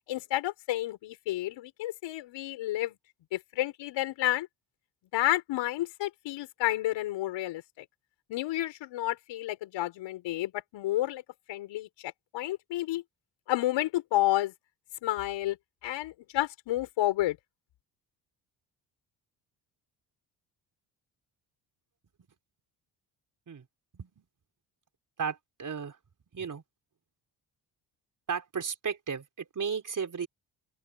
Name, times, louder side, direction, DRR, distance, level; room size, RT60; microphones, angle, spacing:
voice 1, 0.1-3.0 3.3-4.5 5.1-7.9 8.3-11.2 11.5-13.0 13.5-14.5 15.0-15.6 15.8-17.4, left 15 dB, 80° left, 7.1 m, -30 dB
voice 2, 23.9-24.2 25.2-26.0 26.3-26.6 28.3-30.3, right 6 dB, 45° right, 4.4 m, -34 dB
open air
supercardioid pair, 65°, 44 cm